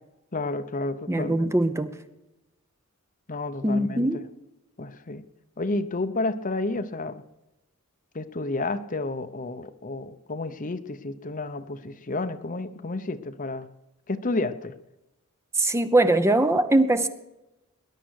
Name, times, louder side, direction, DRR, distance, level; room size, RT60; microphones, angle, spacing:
voice 1, 0.3-1.5 3.3-4.1 4.8-5.2 5.6-7.2 8.1-13.7 14.1-14.8, left 2 dB, 35° left, 11 dB, 0.8 m, -31 dB
voice 2, 1.1-1.9 3.6-4.2 15.5-17.1, right 1 dB, 15° right, 10 dB, 0.8 m, -21 dB
20.0 x 11.0 x 6.5 m, 0.97 s
head